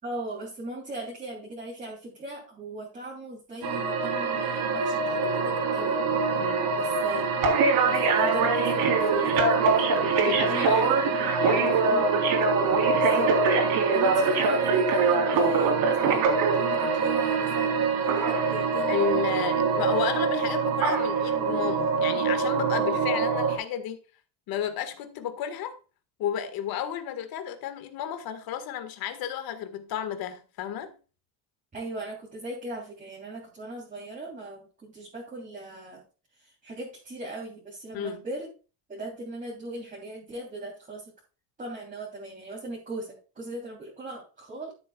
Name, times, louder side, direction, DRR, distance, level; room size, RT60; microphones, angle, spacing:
voice 1, 0.0-6.0 6.7-7.3 7.8-9.8 10.2-12.3 13.0-13.4 13.9-19.3 31.7-36.0 36.4-38.5 38.9-41.0 41.6-44.7, right 2 dB, 20° right, 3.4 m, -39 dB
sound 1, 3.6-23.6, right 4 dB, 60° right, 3.8 m, -24 dB
voice 2, 10.2-11.7 18.9-24.0 24.5-25.7 26.2-31.0 37.9-38.2, left 9 dB, 55° left, 1.8 m, -32 dB
13.0 x 8.3 x 2.4 m
cardioid pair, 155°, 43 cm